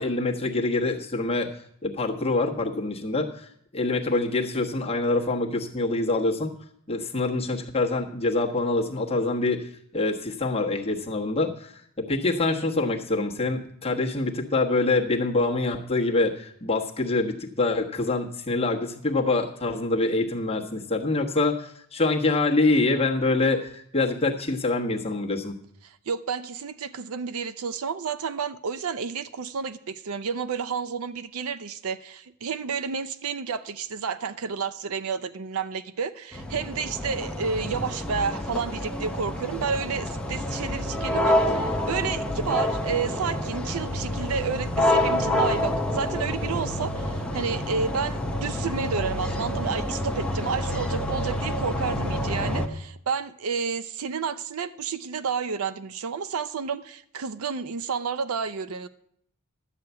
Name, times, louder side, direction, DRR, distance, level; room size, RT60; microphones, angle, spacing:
voice 1, 0.0-1.5 1.8-6.5 6.9-11.7 12.0-25.6, left 2 dB, 25° left, -1 dB, 1.2 m, -25 dB
voice 2, 25.8-58.9, right 6 dB, 70° right, 13 dB, 0.5 m, -31 dB
sound 1, 36.3-52.7, left 1 dB, 5° left, 0.9 m, -28 dB
12.0 x 4.9 x 8.1 m, 0.70 s
head